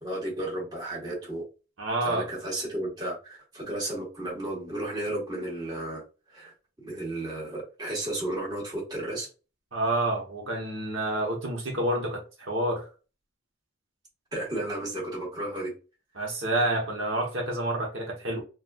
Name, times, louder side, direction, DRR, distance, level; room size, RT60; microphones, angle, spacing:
voice 1, 0.0-1.4 2.0-6.0 6.3-9.3 14.3-15.7, right 1 dB, 20° right, 1.3 m, -33 dB
voice 2, 1.8-2.3 9.7-12.9 16.2-18.4, right 1 dB, 65° right, 1.0 m, -28 dB
4.1 x 2.3 x 2.3 m
head